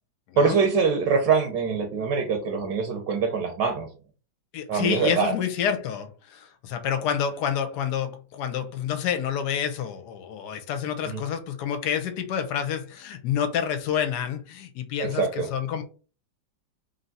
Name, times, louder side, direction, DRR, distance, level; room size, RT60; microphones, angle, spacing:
voice 1, 0.4-3.9 4.7-5.3 11.0-11.2 15.0-15.5, right 5 dB, 75° right, 1.4 m, -24 dB
voice 2, 4.5-15.8, left 8 dB, 70° left, 1.1 m, -28 dB
3.5 x 2.7 x 4.0 m
omnidirectional pair, 2.0 m